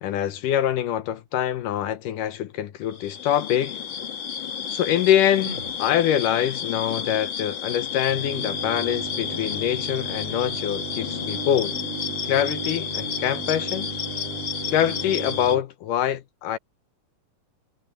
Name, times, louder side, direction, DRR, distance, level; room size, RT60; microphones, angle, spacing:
voice 1, 0.0-3.8 4.7-11.7 12.2-13.9 14.7-16.6, left 11 dB, 70° left, 2.3 m, -24 dB
sound 1, 2.9-15.6, left 7 dB, 50° left, 1.5 m, -31 dB
sound 2, 4.8-6.5, equal, 15° right, 8.1 m, -44 dB
sound 3, 8.1-15.6, right 4 dB, 70° right, 5.7 m, -36 dB
omnidirectional pair, 4.2 m